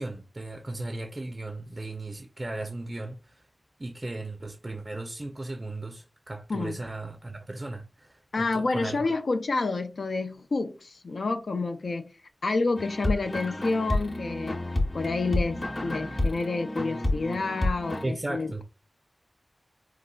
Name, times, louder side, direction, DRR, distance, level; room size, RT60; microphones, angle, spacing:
voice 1, 0.0-3.4 3.8-9.1 18.0-18.6, right 2 dB, 40° right, 0.4 m, -36 dB
voice 2, 8.3-12.1 12.4-14.6 14.9-18.6, left 3 dB, 85° left, 0.4 m, -29 dB
sound 1, 12.8-18.0, left 1 dB, 60° left, 0.9 m, -30 dB
3.8 x 2.3 x 2.3 m
cardioid pair, 40°, 0 cm